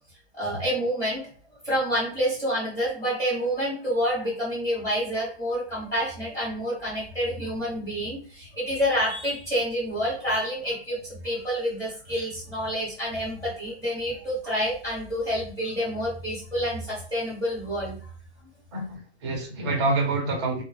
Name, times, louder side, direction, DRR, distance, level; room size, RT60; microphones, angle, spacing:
voice 1, 0.3-1.3 1.6-18.0, equal, 10° left, -8 dB, 1.0 m, -28 dB
voice 2, 18.7-20.6, right 2 dB, 25° right, 0 dB, 0.6 m, -27 dB
2.1 x 2.0 x 3.1 m, 0.40 s
hypercardioid pair, 155°, 34 cm